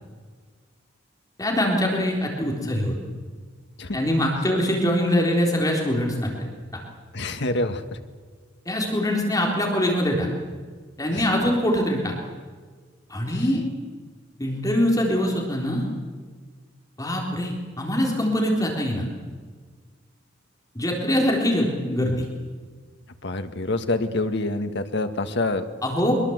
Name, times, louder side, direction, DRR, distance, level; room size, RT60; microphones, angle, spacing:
voice 1, 1.4-3.0 3.9-6.5 8.7-10.3 11.0-12.1 13.1-13.6 14.4-15.9 17.0-19.1 20.8-22.3 25.8-26.2, equal, 20° left, -1 dB, 3.9 m, -23 dB
voice 2, 7.1-8.0 11.1-11.3 13.3-13.5 23.2-25.7, left 2 dB, 60° left, 7 dB, 1.8 m, -26 dB
24.0 x 22.0 x 8.1 m, 1.5 s
head